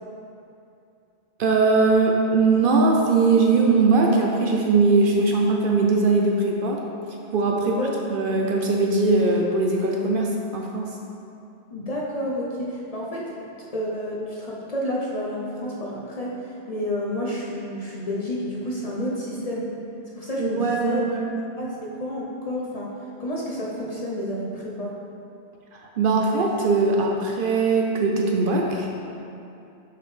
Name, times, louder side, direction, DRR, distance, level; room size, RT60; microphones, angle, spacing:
voice 1, 1.4-6.8 7.3-10.9 20.4-21.3 25.7-28.9, right 3 dB, 60° right, 0 dB, 0.6 m, -20 dB
voice 2, 11.7-13.3 13.7-19.7 20.1-21.1 21.6-22.9 23.2-24.9, left 1 dB, 45° left, -4 dB, 0.6 m, -30 dB
5.8 x 5.1 x 3.2 m, 2.7 s
omnidirectional pair, 1.1 m